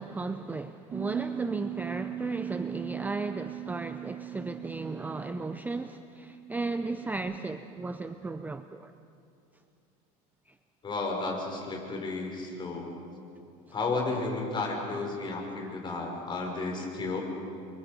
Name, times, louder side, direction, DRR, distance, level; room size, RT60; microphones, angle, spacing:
voice 1, 0.0-8.9 10.5-10.6 15.6-15.7, right 3 dB, 10° right, 0.6 m, -35 dB
Bass guitar, 0.9-7.2, right 12 dB, 35° right, 1.8 m, -40 dB
voice 2, 10.8-12.9 13.7-17.2, left 3 dB, 25° left, 5.8 m, -32 dB
29.0 x 24.0 x 5.3 m
supercardioid pair, 120°, 18 cm